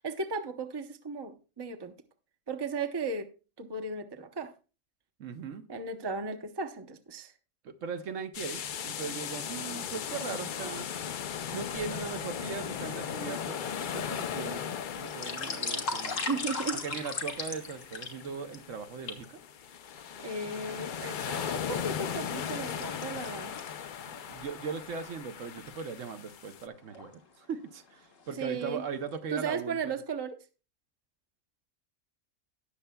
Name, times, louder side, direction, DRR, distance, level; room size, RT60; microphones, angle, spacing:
voice 1, 0.0-2.0 2.5-3.3 3.6-4.5 5.7-7.3 16.3-16.8 20.2-23.6 28.3-28.8 29.3-30.4, right 4 dB, 25° right, 0.7 m, -35 dB
voice 2, 5.2-5.7 7.6-10.9 11.5-14.6 15.0-16.2 16.7-19.4 24.1-28.0 28.3-29.8, right 6 dB, 70° right, 1.1 m, -39 dB
sound 1, 8.3-26.7, left 8 dB, 55° left, 0.5 m, -38 dB
sound 2, 15.0-18.6 19.1-19.2 20.0-20.8 21.3-24.1 24.5-24.6 25.0-25.1 25.6-25.8 26.7-27.1 27.7-27.9 28.2-28.8 29.1-29.2, left 3 dB, 75° left, 1.7 m, -37 dB
18.5 x 6.7 x 2.2 m
omnidirectional pair, 1.4 m